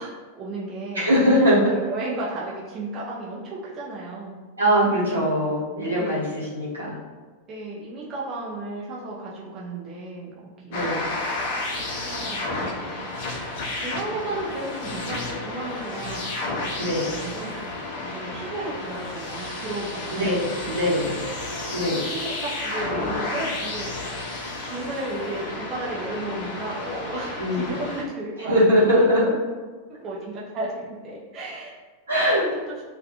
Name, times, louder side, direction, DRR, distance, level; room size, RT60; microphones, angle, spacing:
voice 1, 0.0-4.4 5.9-6.3 7.5-11.2 11.8-16.5 17.0-17.6 18.0-20.3 20.6-21.2 21.8-23.9 24.6-29.4 29.9-31.7 32.1-32.8, right 2 dB, 30° right, -6 dB, 0.5 m, -34 dB
voice 2, 0.9-1.6 4.6-7.0 10.7-11.0 16.8-17.1 20.1-21.1 21.7-22.0 27.4-27.7 28.5-29.3 32.1-32.4, equal, 75° right, -7 dB, 0.9 m, -21 dB
sound 1, 10.7-28.0, left 2 dB, 50° left, 0.5 m, -32 dB
2.3 x 2.3 x 2.7 m, 1.3 s
figure-of-eight pair, 90°, 0 cm